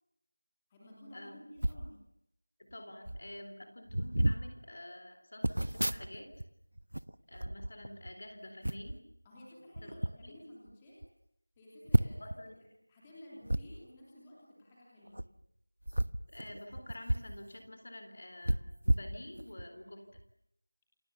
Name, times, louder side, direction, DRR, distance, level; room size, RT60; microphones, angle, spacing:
voice 1, 0.7-2.0 9.2-11.0 11.6-12.2 12.9-15.2 19.7-19.9, left 1 dB, 5° left, -6 dB, 3.0 m, -53 dB
sound 1, 1.6-1.9 2.7-2.8 3.0-3.3 3.9-4.4 5.4-6.5 6.8-8.1 8.6-9.0 9.7-10.1 10.7-10.8 11.0-11.1 11.9-12.4 13.5-13.6 15.1-15.3 15.8-17.3 17.7-17.8 18.4-19.7 20.1-20.3, right 1 dB, 80° right, 1.2 m, -32 dB
voice 2, 2.7-6.3 7.3-9.0 9.8-9.9 10.2-10.4 12.2-12.6 16.3-20.0, left 1 dB, 30° left, 6 dB, 3.7 m, -48 dB
29.5 x 26.5 x 7.1 m, 0.78 s
figure-of-eight pair, 180°, 0 cm